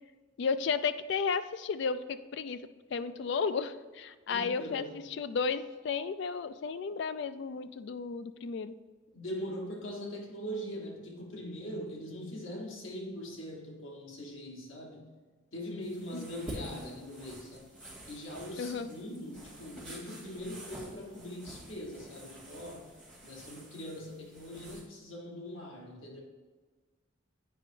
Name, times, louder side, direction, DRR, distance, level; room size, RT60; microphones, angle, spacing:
voice 1, 0.4-2.6 2.9-8.7 16.1-16.3 18.6-18.9, left 5 dB, 60° left, 12 dB, 0.3 m, -33 dB
voice 2, 4.3-5.0 9.1-15.1 15.5-17.8 18.1-22.9 23.2-26.2, equal, 90° left, 0 dB, 1.3 m, -42 dB
sound 1, 15.8-24.8, right 1 dB, 5° left, 2.1 m, -48 dB
9.1 x 5.2 x 2.7 m, 1.3 s
head